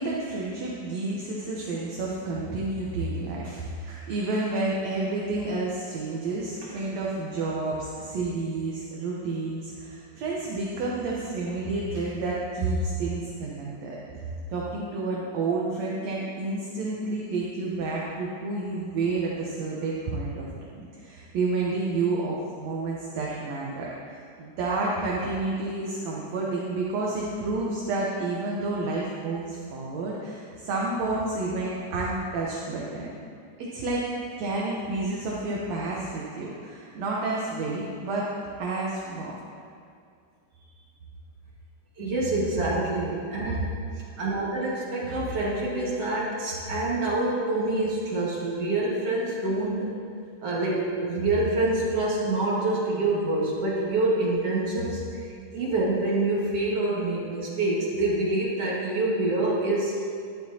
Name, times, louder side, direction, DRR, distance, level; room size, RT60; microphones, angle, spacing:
voice 1, 0.0-20.5 20.7-33.1 33.6-34.1 34.4-38.3 38.6-39.4 43.5-43.6, right 3 dB, 65° right, -4 dB, 1.9 m, -30 dB
voice 2, 42.0-43.7 44.0-49.9 50.4-60.0, right 2 dB, 50° right, -6 dB, 2.5 m, -26 dB
12.0 x 11.0 x 2.8 m, 2.3 s
omnidirectional pair, 4.0 m